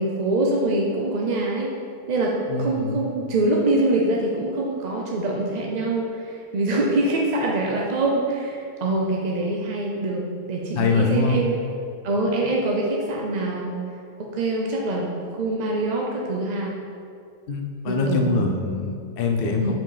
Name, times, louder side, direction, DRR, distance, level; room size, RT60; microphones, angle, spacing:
voice 1, 0.0-1.7 2.1-11.6 12.0-13.8 14.2-16.8 17.8-18.5 19.6-19.7, right 2 dB, 55° right, -1 dB, 0.5 m, -24 dB
voice 2, 2.5-3.1 10.7-11.4 17.5-19.7, left 4 dB, 50° left, 2 dB, 0.7 m, -24 dB
5.8 x 4.8 x 4.9 m, 2.4 s
omnidirectional pair, 1.6 m